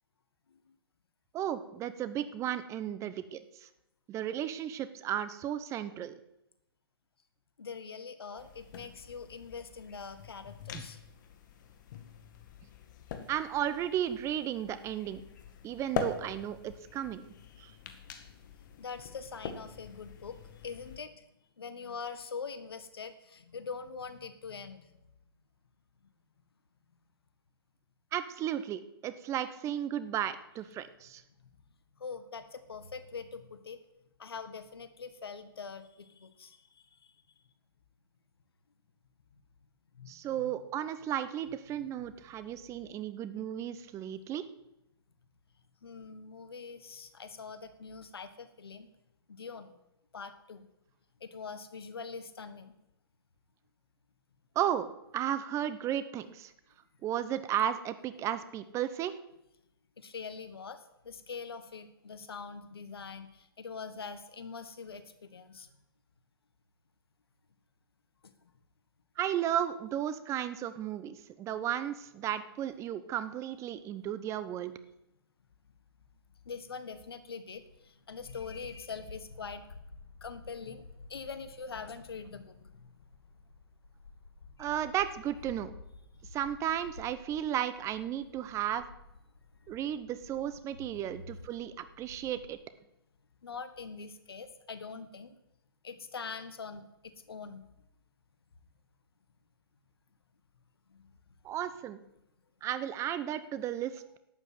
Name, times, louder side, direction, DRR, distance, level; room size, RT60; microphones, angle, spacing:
voice 1, 1.3-3.7 4.1-6.1 10.7-10.8 13.3-15.2 15.6-17.7 28.1-31.2 40.1-44.5 54.5-56.5 57.0-59.2 69.2-74.7 84.6-85.7 86.3-88.8 89.7-92.6 101.4-102.0 102.6-104.2, right 10 dB, 25° right, 13 dB, 0.9 m, -34 dB
voice 2, 7.6-11.0 18.8-21.3 21.6-25.1 26.0-26.1 31.4-31.5 31.9-33.8 34.2-37.2 39.9-40.5 42.5-42.6 45.8-48.9 49.3-49.8 50.1-50.7 51.2-52.7 60.0-65.7 68.2-68.5 76.4-79.8 80.2-82.9 84.6-84.7 93.4-95.4 95.8-97.7 100.9-101.1, left 5 dB, 75° left, 11 dB, 1.6 m, -44 dB
sound 1, 8.4-21.0, left 7 dB, 50° left, 1.9 m, -44 dB
sound 2, 77.5-92.5, left 3 dB, 90° left, 2.1 m, -53 dB
12.0 x 8.3 x 7.9 m, 0.87 s
figure-of-eight pair, 120°, 13 cm